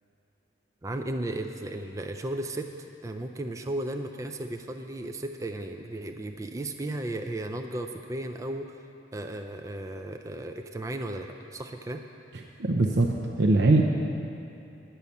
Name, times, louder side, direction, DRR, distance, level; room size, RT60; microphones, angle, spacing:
voice 1, 0.8-2.7 3.0-8.8 9.1-12.0, right 1 dB, 20° right, 5 dB, 0.3 m, -35 dB
voice 2, 12.6-13.8, right 2 dB, 75° right, 0 dB, 0.6 m, -22 dB
10.5 x 5.6 x 8.3 m, 2.9 s
head